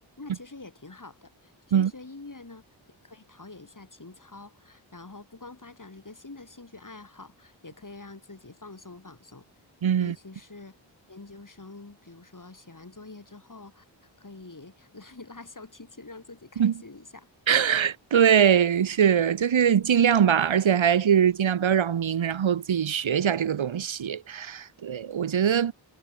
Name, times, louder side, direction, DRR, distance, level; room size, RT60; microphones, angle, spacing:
voice 1, 0.2-2.6 3.0-9.4 10.0-10.8 11.1-13.8 14.2-17.3, left 3 dB, 40° left, 4.8 m, -46 dB
voice 2, 9.8-10.1 16.6-16.7 17.5-25.7, right 8 dB, 85° right, 0.9 m, -22 dB
wide cardioid pair, 50°, 46 cm